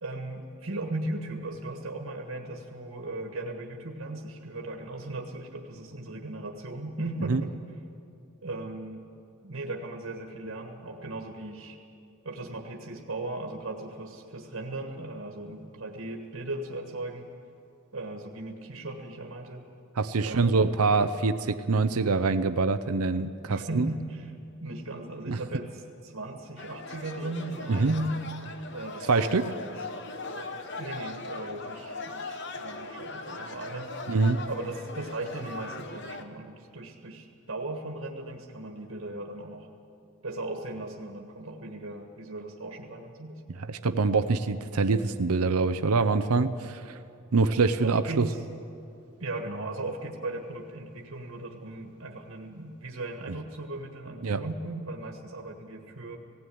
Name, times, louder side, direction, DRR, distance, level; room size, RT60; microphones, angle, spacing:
voice 1, 0.0-7.6 8.4-9.0 9.4-11.8 12.2-17.3 17.9-19.7 20.2-20.6 23.5-24.3 24.6-28.2 28.7-29.8 30.2-33.9 34.5-39.7 40.2-43.4 47.8-48.4 49.2-56.2, right 2 dB, 70° right, 2 dB, 1.5 m, -37 dB
voice 2, 20.0-23.9 25.3-25.4 27.7-27.9 29.1-29.5 34.1-34.4 43.7-47.0 47.3-48.3 53.3-53.4 54.2-54.5, right 4 dB, 85° right, 10 dB, 0.7 m, -25 dB
sound 1, 26.6-36.2, left 3 dB, 50° left, 1.1 m, -39 dB
17.0 x 16.0 x 9.4 m, 2.5 s
head